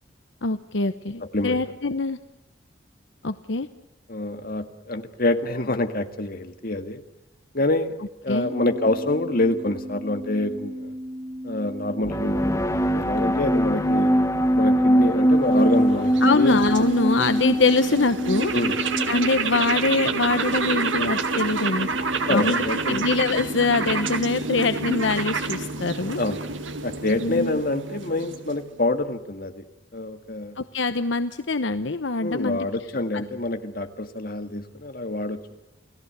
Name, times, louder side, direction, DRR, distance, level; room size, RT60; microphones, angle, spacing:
voice 1, 0.4-2.2 3.2-3.7 8.3-8.5 16.2-18.5 19.1-26.2 27.2-27.6 30.6-32.7 33.1-33.2, left 3 dB, 70° left, 11 dB, 0.9 m, -24 dB
voice 2, 4.1-7.0 7.5-10.9 11.4-14.1 14.5-16.6 18.5-18.8 22.3-23.1 26.2-26.4 26.8-29.6 29.9-30.6 32.2-35.4, left 2 dB, 50° left, 7 dB, 1.9 m, -26 dB
sound 1, 8.4-25.1, equal, 20° right, 2.0 m, -36 dB
sound 2, 12.0-19.6, equal, 15° left, 1.4 m, -22 dB
sound 3, 15.3-28.8, right 4 dB, 80° right, 2.1 m, -29 dB
29.5 x 17.5 x 8.2 m, 0.93 s
head